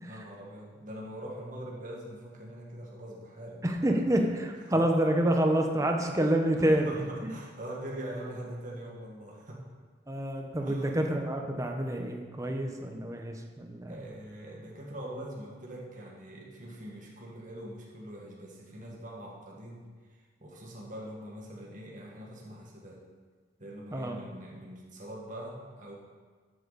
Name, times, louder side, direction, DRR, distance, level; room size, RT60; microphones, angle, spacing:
voice 1, 0.0-3.6 3.9-4.0 4.7-4.8 6.6-9.7 10.6-10.9 13.9-19.8 20.1-23.0 23.6-25.9, right 1 dB, 45° right, -3 dB, 1.9 m, -43 dB
voice 2, 3.6-7.0 7.2-7.3 10.1-14.0 23.9-24.2, right 1 dB, 20° right, 3 dB, 1.0 m, -28 dB
12.5 x 8.1 x 4.2 m, 1.5 s
head